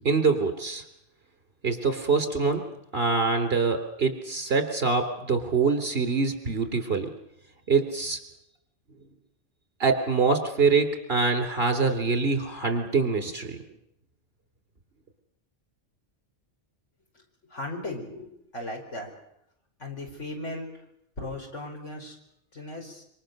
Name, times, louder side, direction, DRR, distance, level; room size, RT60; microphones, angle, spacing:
voice 1, 0.0-0.8 1.6-2.7 2.9-7.1 7.7-8.2 9.8-13.6, right 4 dB, 55° right, 6 dB, 3.6 m, -24 dB
voice 2, 17.5-19.1 19.8-20.7 21.2-22.2 22.5-23.0, left 1 dB, 80° left, 2 dB, 5.2 m, -37 dB
26.5 x 25.0 x 6.7 m, 0.77 s
omnidirectional pair, 1.2 m